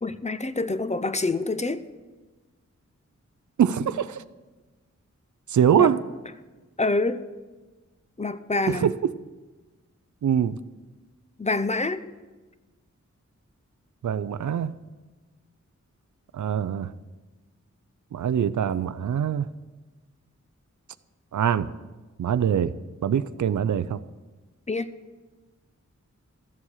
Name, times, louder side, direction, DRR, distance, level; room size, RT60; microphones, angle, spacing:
voice 1, 0.0-1.8 5.8-5.9 6.8-7.2 8.2-8.9 11.4-12.0 24.7-24.9, left 3 dB, 25° left, 12 dB, 0.5 m, -26 dB
voice 2, 3.6-4.2 5.5-6.0 8.7-8.9 10.2-10.6 14.0-14.7 16.3-16.9 18.1-19.5 21.3-21.7 22.2-22.7 23.0-24.0, right 9 dB, 80° right, 15 dB, 0.5 m, -23 dB
13.5 x 7.3 x 6.4 m, 1.2 s
wide cardioid pair, 95°, 30 cm